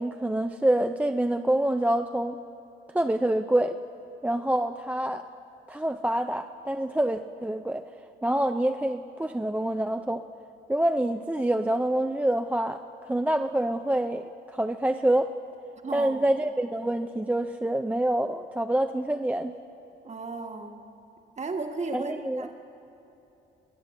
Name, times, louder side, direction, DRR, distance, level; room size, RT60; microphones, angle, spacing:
voice 1, 0.0-2.4 2.9-3.8 4.2-5.2 5.7-7.8 8.2-10.2 10.7-15.3 15.9-19.5 21.9-22.5, right 1 dB, 10° right, 7 dB, 0.4 m, -26 dB
voice 2, 15.8-16.3 20.0-20.8 21.4-22.5, right 3 dB, 35° right, 4 dB, 1.4 m, -34 dB
21.5 x 7.5 x 6.9 m, 2.9 s
cardioid pair, 90°, 20 cm